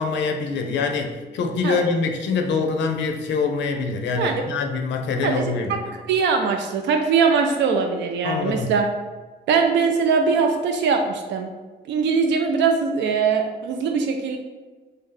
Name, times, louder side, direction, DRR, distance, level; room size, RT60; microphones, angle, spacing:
voice 1, 0.0-5.7 8.2-8.7, left 4 dB, 85° left, 4 dB, 0.5 m, -24 dB
voice 2, 6.1-8.9 9.5-11.5 11.9-14.4, right 5 dB, 90° right, 4 dB, 0.4 m, -21 dB
3.4 x 2.7 x 3.8 m, 1.3 s
cardioid pair, 150°, 18 cm